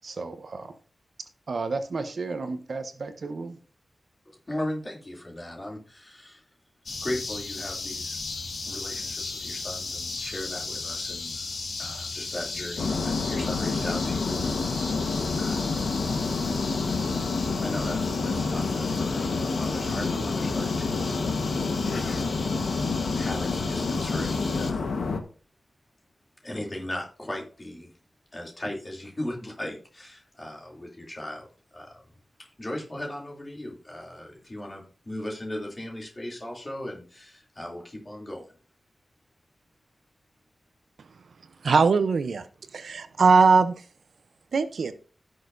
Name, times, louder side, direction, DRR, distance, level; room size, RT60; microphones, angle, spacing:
voice 1, 0.0-0.7 1.5-3.6, right 3 dB, 55° right, 8 dB, 1.0 m, -33 dB
voice 2, 4.3-6.4 7.0-8.2 8.7-11.5 11.8-15.0 15.4-15.8 17.6-21.8 23.1-24.9 26.4-27.9 28.3-32.0 32.4-38.5, left 1 dB, 25° left, -1 dB, 2.9 m, -37 dB
sound 1, 6.9-24.7, left 3 dB, 60° left, 1.9 m, -36 dB
sound 2, 12.8-25.2, left 4 dB, 85° left, 1.3 m, -28 dB
voice 3, 41.6-42.5 42.7-43.7 44.5-44.9, right 4 dB, 75° right, 11 dB, 0.7 m, -20 dB
16.0 x 6.4 x 2.7 m, 0.39 s
wide cardioid pair, 130°, 0 cm